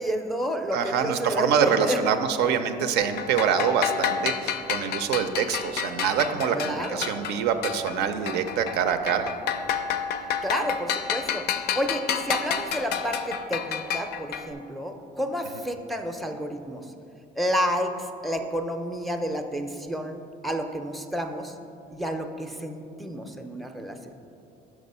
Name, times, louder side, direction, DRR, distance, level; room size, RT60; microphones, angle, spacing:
voice 1, 0.0-2.0 6.5-7.1 10.4-11.4 11.8-16.8 17.4-20.2 20.4-21.5 21.9-24.1, equal, ahead, 4 dB, 0.4 m, -30 dB
voice 2, 0.7-9.3, right 7 dB, 85° right, 8 dB, 0.5 m, -25 dB
sound 1, 3.0-8.0 8.3-14.5, left 7 dB, 75° left, 0.4 m, -30 dB
6.0 x 4.8 x 5.4 m, 2.7 s
cardioid pair, 110°, 17 cm